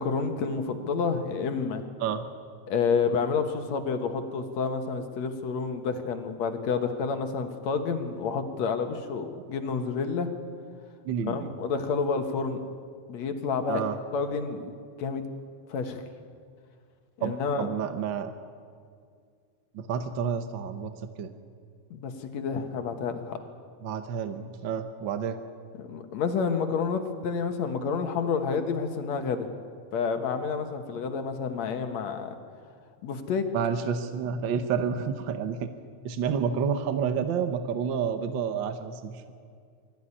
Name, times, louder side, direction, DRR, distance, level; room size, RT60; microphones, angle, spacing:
voice 1, 0.0-1.8 2.7-10.3 11.3-12.6 13.1-13.8 14.1-14.7 15.0-15.2 15.7-16.0 17.2-17.7 21.9-23.4 25.8-29.5 29.9-32.4 33.0-33.5, left 5 dB, 65° left, 7 dB, 2.5 m, -29 dB
voice 2, 11.0-11.5 13.7-14.0 17.2-18.3 19.7-20.9 21.2-21.3 23.8-25.4 33.5-35.7 36.0-39.1, right 7 dB, 70° right, 9 dB, 1.1 m, -29 dB
23.5 x 14.5 x 9.8 m, 2.2 s
omnidirectional pair, 3.4 m